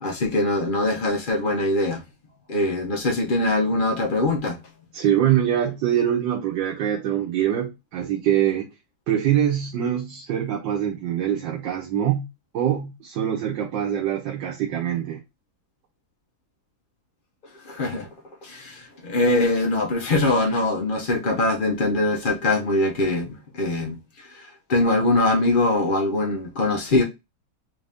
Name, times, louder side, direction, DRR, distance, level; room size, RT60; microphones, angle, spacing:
voice 1, 0.0-2.0 2.5-4.6 17.6-18.1 18.4-27.0, left 2 dB, 80° left, 0.4 m, -23 dB
voice 2, 4.9-8.7 9.1-12.3 12.5-15.2, right 10 dB, 70° right, 1.4 m, -24 dB
3.9 x 2.6 x 3.3 m
omnidirectional pair, 2.1 m